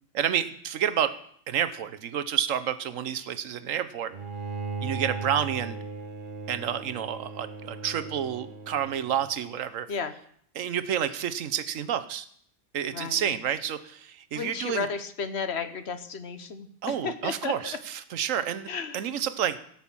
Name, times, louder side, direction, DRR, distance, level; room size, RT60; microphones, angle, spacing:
voice 1, 0.1-1.1 1.5-4.1 4.8-5.8 6.5-9.9 10.5-12.3 12.7-14.9 16.8-19.6, right 9 dB, 85° right, 12 dB, 1.2 m, -29 dB
Bowed string instrument, 4.1-9.3, right 4 dB, 40° right, 1.3 m, -37 dB
voice 2, 12.9-13.3 14.3-17.8 18.7-19.0, left 5 dB, 60° left, 11 dB, 1.2 m, -33 dB
16.5 x 6.0 x 7.2 m, 0.63 s
omnidirectional pair, 1.3 m